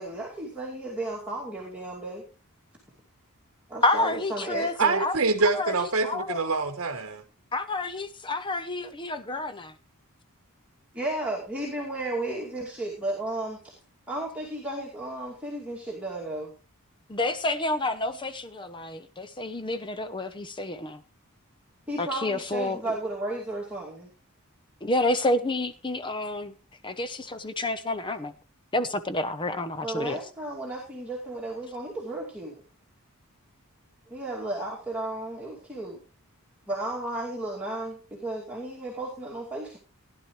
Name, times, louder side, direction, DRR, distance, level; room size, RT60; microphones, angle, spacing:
voice 1, 0.0-2.2 3.7-5.0 11.0-13.7 14.1-16.5 21.9-24.1 29.8-32.6 34.1-36.0 36.7-39.8, right 2 dB, 5° right, 2.4 m, -34 dB
voice 2, 3.8-5.2 5.5-6.4 7.5-9.7 17.1-21.0 22.0-23.0 24.8-26.5 26.8-28.3 28.7-30.2, left 2 dB, 20° left, 0.7 m, -29 dB
voice 3, 4.8-7.2, right 3 dB, 60° right, 1.1 m, -25 dB
16.5 x 10.5 x 3.1 m
head